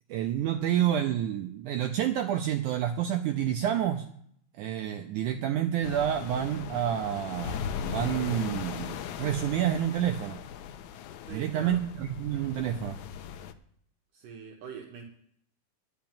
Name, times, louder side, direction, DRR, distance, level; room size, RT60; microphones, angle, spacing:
voice 1, 0.1-4.1 4.6-10.4 11.3-13.0, right 10 dB, 90° right, 6 dB, 1.8 m, -29 dB
sound 1, 5.8-13.5, left 8 dB, 90° left, 1.7 m, -38 dB
voice 2, 11.3-11.8 14.1-15.0, right 6 dB, 70° right, 2 dB, 2.4 m, -44 dB
10.5 x 5.9 x 8.7 m, 0.67 s
omnidirectional pair, 4.1 m